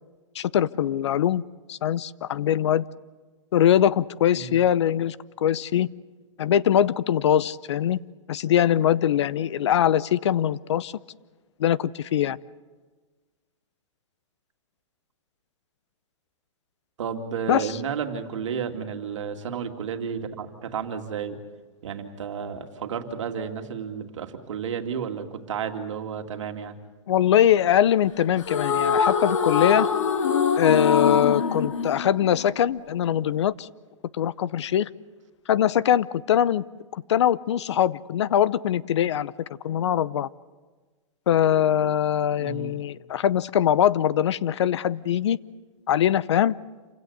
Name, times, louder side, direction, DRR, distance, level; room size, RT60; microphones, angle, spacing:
voice 1, 0.3-1.4 1.7-2.8 3.5-5.9 6.4-8.0 8.3-10.9 11.6-12.4 17.5-17.8 27.1-29.9 30.6-33.7 34.1-34.9 35.5-36.6 36.9-39.3 39.6-40.3 41.3-45.4 45.9-46.5, left 10 dB, 60° left, 20 dB, 0.7 m, -22 dB
voice 2, 17.0-21.4 21.8-26.8 42.4-42.7, right 7 dB, 70° right, 5 dB, 2.5 m, -32 dB
sound 1, 28.4-32.8, left 6 dB, 75° left, 2.2 m, -23 dB
28.0 x 16.5 x 8.2 m, 1.3 s
hypercardioid pair, 175°, 16 cm